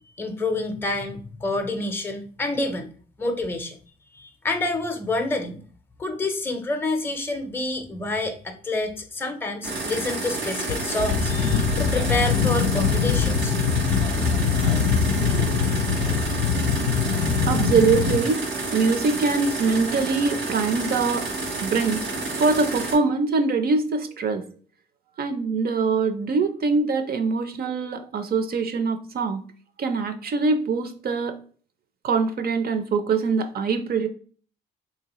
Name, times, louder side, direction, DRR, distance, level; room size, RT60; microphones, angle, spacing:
voice 1, 0.2-2.9 3.2-3.8 4.1-5.6 6.0-13.5, left 2 dB, 10° left, 5 dB, 0.6 m, -28 dB
sound 1, 9.6-22.9, right 2 dB, 80° right, 1.3 m, -30 dB
sound 2, 10.7-18.2, left 6 dB, 80° left, 0.5 m, -23 dB
voice 2, 17.5-18.4 18.7-21.3 21.6-22.0 22.3-24.4 25.2-29.4 29.8-31.4 32.0-34.1, right 4 dB, 50° right, 8 dB, 0.6 m, -23 dB
3.6 x 2.8 x 2.9 m, 0.43 s
cardioid pair, 90°, 20 cm